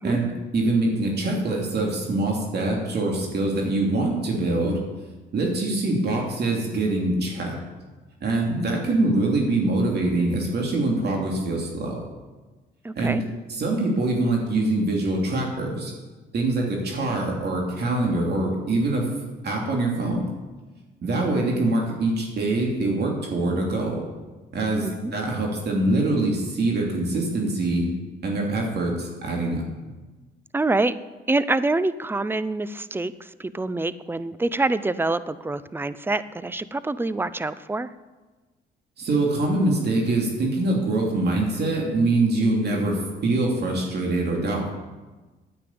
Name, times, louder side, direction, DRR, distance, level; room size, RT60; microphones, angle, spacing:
voice 1, 0.0-4.8 5.3-7.6 8.2-12.0 12.9-13.2 13.5-15.9 16.3-19.1 19.4-20.3 21.0-24.0 24.5-27.9 28.2-29.6 39.0-44.7, right 2 dB, 55° right, -1 dB, 2.8 m, -24 dB
voice 2, 12.8-13.2 24.8-25.1 30.5-30.9 31.3-37.9, right 2 dB, 10° right, 15 dB, 0.5 m, -26 dB
9.9 x 8.8 x 8.6 m, 1.3 s
cardioid pair, 90°, 20 cm